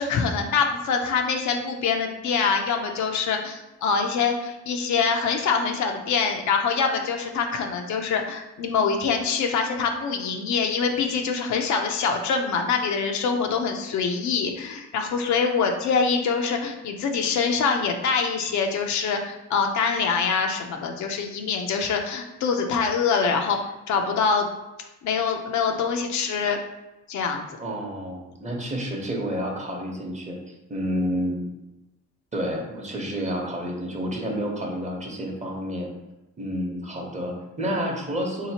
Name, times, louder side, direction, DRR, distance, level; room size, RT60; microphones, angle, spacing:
voice 1, 0.0-24.5 25.0-26.6 27.1-27.4, left 5 dB, 70° left, 4 dB, 0.6 m, -24 dB
voice 2, 27.6-31.5 32.3-35.9 36.4-38.5, equal, 25° right, 0 dB, 0.9 m, -30 dB
4.0 x 2.8 x 2.8 m, 0.97 s
cardioid pair, 90°, 30 cm